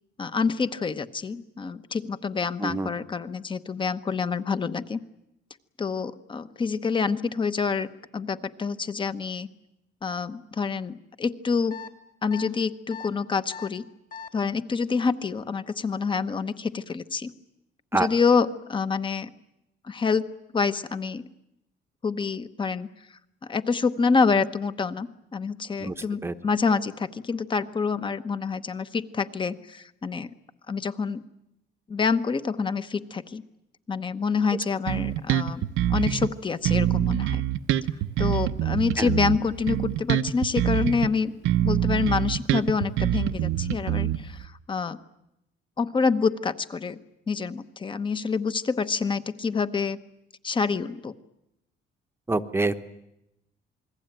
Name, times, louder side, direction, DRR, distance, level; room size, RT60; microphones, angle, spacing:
voice 1, 0.2-5.0 5.8-9.5 10.0-11.8 12.2-13.9 14.3-17.3 17.9-19.3 19.8-20.3 20.5-21.3 22.0-22.9 23.4-30.3 30.7-31.2 31.9-33.4 33.9-37.4 38.2-41.3 41.6-45.0 45.8-47.0 47.3-50.0 50.4-51.1, left 5 dB, 25° left, 12 dB, 1.0 m, -27 dB
voice 2, 2.6-2.9 17.9-18.1 25.8-25.9 26.2-26.3 39.0-39.1 52.3-52.7, right 2 dB, 10° right, 9 dB, 1.0 m, -25 dB
sound 1, 11.7-11.9 12.3-12.5 12.9-13.1 13.5-13.7 14.1-14.3, left 6 dB, 40° left, 3.0 m, -39 dB
Bass guitar, 34.9-36.3 36.6-41.1 41.4-44.5, right 12 dB, 80° right, 0.9 m, -25 dB
28.0 x 21.5 x 9.1 m, 0.86 s
cardioid pair, 155°, 20 cm